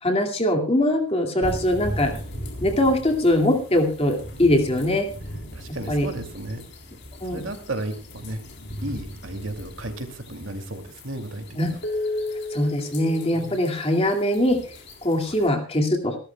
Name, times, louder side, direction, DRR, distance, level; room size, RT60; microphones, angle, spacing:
voice 1, 0.0-2.1 2.6-5.1 5.9-6.1 7.2-7.4 11.6-11.7 12.5-14.6 15.0-16.2, left 1 dB, 30° left, 3 dB, 2.3 m, -22 dB
sound 1, 1.4-15.5, left 1 dB, 55° left, 3.7 m, -36 dB
voice 2, 4.6-4.9 5.5-6.6 7.2-8.4 8.8-11.8 13.3-13.6 15.2-15.5, right 1 dB, 65° right, 6 dB, 2.5 m, -34 dB
26.5 x 13.0 x 2.3 m, 0.37 s
head